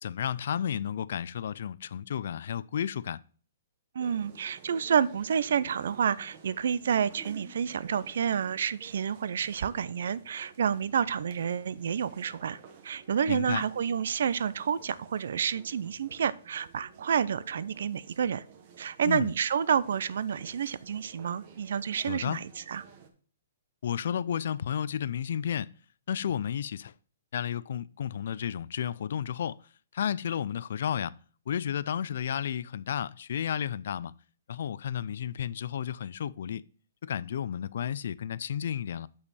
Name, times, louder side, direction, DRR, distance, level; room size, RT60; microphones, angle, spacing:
voice 1, 0.0-3.2 13.3-13.6 19.0-19.3 22.0-22.4 23.8-25.7 26.1-26.9 27.3-29.6 29.9-31.1 31.5-34.1 34.5-36.6 37.0-39.1, left 9 dB, 55° left, 0.3 m, -32 dB
voice 2, 3.9-18.4 18.8-22.8, right 7 dB, 60° right, 0.4 m, -29 dB
sound 1, 4.0-23.1, right 6 dB, 30° right, 0.9 m, -53 dB
6.4 x 5.8 x 4.1 m
hypercardioid pair, 175°, 0 cm